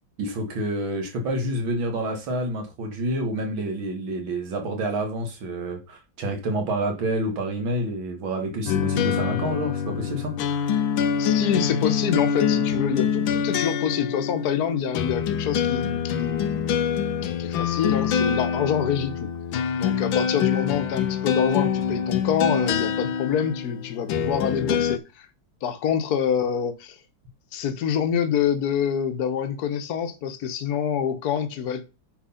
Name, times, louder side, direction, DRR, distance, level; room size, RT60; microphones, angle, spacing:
voice 1, 0.2-10.8, right 1 dB, 80° right, 2.8 m, -28 dB
sound 1, 8.7-25.0, left 8 dB, 80° left, 1.5 m, -25 dB
voice 2, 11.2-16.7 17.2-19.3 19.8-25.3 25.6-27.0 27.5-31.9, left 8 dB, 55° left, 1.5 m, -26 dB
8.9 x 4.9 x 5.7 m
omnidirectional pair, 2.1 m